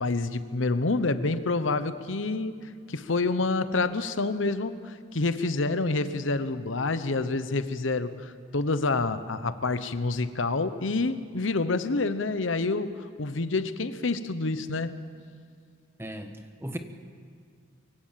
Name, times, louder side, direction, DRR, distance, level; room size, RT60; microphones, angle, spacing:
voice 1, 0.0-2.6 2.9-14.9, left 3 dB, 85° left, 12 dB, 1.0 m, -28 dB
voice 2, 16.0-16.8, equal, 15° right, 7 dB, 1.2 m, -37 dB
24.0 x 16.5 x 7.4 m, 2.2 s
head